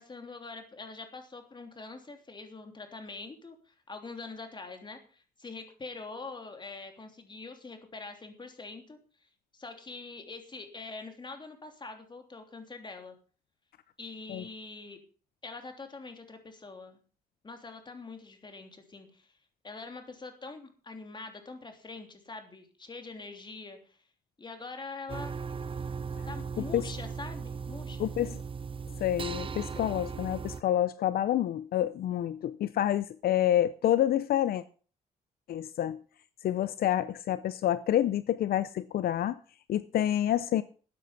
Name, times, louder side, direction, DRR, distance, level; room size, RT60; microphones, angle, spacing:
voice 1, 0.0-13.1 14.0-15.0 15.4-17.0 17.4-19.4 19.6-24.0 24.4-25.3 26.3-28.3, left 3 dB, 30° left, 3.2 m, -44 dB
sound 1, 25.1-30.6, right 5 dB, 35° right, 0.8 m, -37 dB
voice 2, 28.0-28.3 29.0-34.6 35.5-36.0 36.4-39.4 39.7-40.6, left 11 dB, 75° left, 0.6 m, -28 dB
13.5 x 9.4 x 5.8 m
cardioid pair, 95°, 16 cm